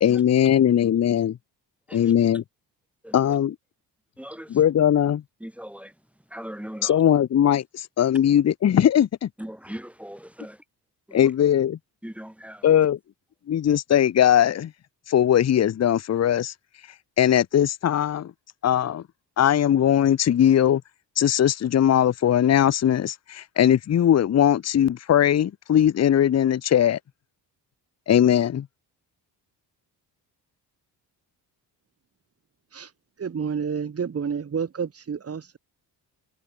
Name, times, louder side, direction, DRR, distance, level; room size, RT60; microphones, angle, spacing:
voice 1, 0.0-1.4 1.9-2.4 3.1-3.6 4.5-5.2 6.8-9.3 11.1-11.8 12.6-13.0 13.5-14.7 15.1-16.5 17.2-18.3 18.6-19.0 19.4-20.8 21.2-27.0 28.1-28.7, left 10 dB, 40° left, 0.7 m, -20 dB
voice 2, 4.2-4.6 5.4-6.0 6.3-7.0 9.4-10.6 11.1-11.3 12.0-12.7, equal, 5° right, 3.4 m, -39 dB
voice 3, 33.2-35.6, right 6 dB, 35° right, 2.8 m, -29 dB
wide cardioid pair, 155°, 42 cm